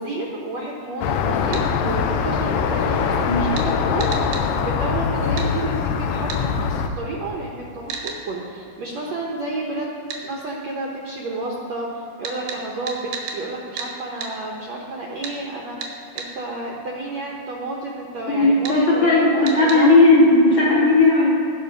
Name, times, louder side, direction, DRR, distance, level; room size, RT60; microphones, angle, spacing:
voice 1, 0.0-9.9 10.2-15.8 16.2-20.0, right 2 dB, 65° right, -2 dB, 1.8 m, -31 dB
sound 1, 1.0-6.9, left 6 dB, 80° left, 2.0 m, -22 dB
sound 2, 1.5-1.7 3.6-3.7 4.0-4.5 5.4-5.5 6.3-6.4 7.9-8.2 10.1-10.2 12.2-13.4 13.8-13.9 14.2-14.3 15.2-15.4 15.8-16.3 18.6-18.8 19.5-19.8, right 5 dB, 90° right, 3.4 m, -32 dB
voice 2, 18.3-21.3, left 2 dB, 40° left, -6 dB, 2.7 m, -15 dB
19.0 x 6.4 x 5.2 m, 2.9 s
omnidirectional pair, 4.3 m